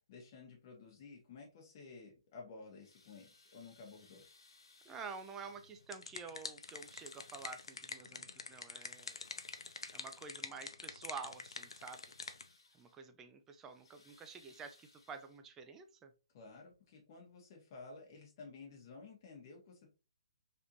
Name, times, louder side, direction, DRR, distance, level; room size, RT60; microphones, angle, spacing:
voice 1, 0.1-4.2 16.3-19.9, left 4 dB, 35° left, 0 dB, 1.1 m, -53 dB
sound 1, 2.6-6.1 6.5-8.1 8.6-10.5 11.0-13.0 13.5-15.6 16.7-16.8 17.4-17.5, left 3 dB, 70° left, 1.4 m, -65 dB
voice 2, 4.9-9.2 9.9-12.0 12.7-16.1, right 5 dB, 10° right, 7 dB, 0.3 m, -49 dB
sound 2, 5.6-12.5, left 4 dB, 85° left, 0.4 m, -47 dB
3.4 x 2.5 x 2.8 m, 0.31 s
hypercardioid pair, 155°, 3 cm